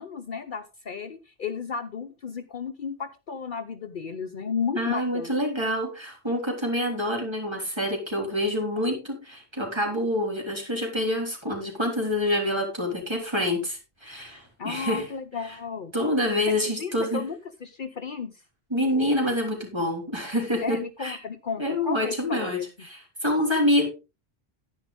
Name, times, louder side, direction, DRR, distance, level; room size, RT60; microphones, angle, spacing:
voice 1, 0.0-5.3 14.6-15.9 16.6-18.4 20.6-22.6, left 6 dB, 55° left, 8 dB, 0.9 m, -34 dB
voice 2, 4.7-15.1 15.9-17.2 18.7-21.2 21.6-23.9, left 1 dB, 25° right, 1 dB, 3.6 m, -27 dB
10.5 x 10.0 x 3.6 m, 0.28 s
omnidirectional pair, 1.1 m